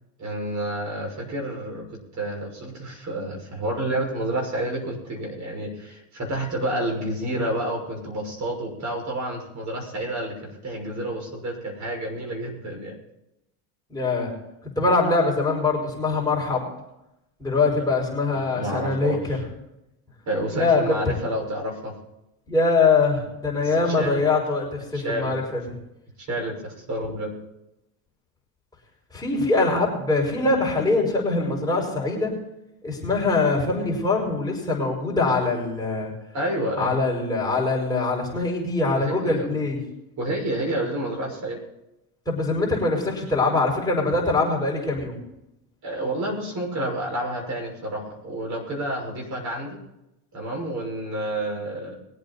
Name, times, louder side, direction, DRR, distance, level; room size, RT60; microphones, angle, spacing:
voice 1, 0.2-12.9 18.3-19.2 20.3-21.9 23.6-24.2 24.9-25.3 26.2-27.3 36.3-37.0 38.9-39.6 40.2-41.6 45.8-49.8 50.3-52.0, right 1 dB, 40° right, 0 dB, 6.1 m, -29 dB
voice 2, 13.9-14.3 14.8-16.7 17.4-19.4 20.5-20.9 22.5-25.6 29.1-32.3 32.8-36.1 36.8-39.8 42.3-45.2, left 3 dB, 10° left, -3 dB, 5.5 m, -23 dB
22.5 x 8.6 x 4.2 m, 0.88 s
supercardioid pair, 105°, 42 cm